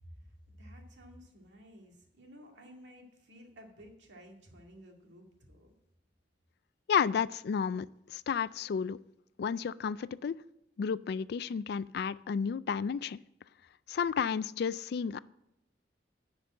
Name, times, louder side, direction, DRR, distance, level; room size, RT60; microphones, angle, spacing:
voice 1, 0.0-5.7, equal, 90° right, 1 dB, 2.2 m, -53 dB
voice 2, 6.9-9.0 9.4-10.4 10.8-13.2 13.9-15.2, left 6 dB, 60° left, 18 dB, 0.3 m, -32 dB
10.5 x 5.3 x 7.5 m, 0.84 s
head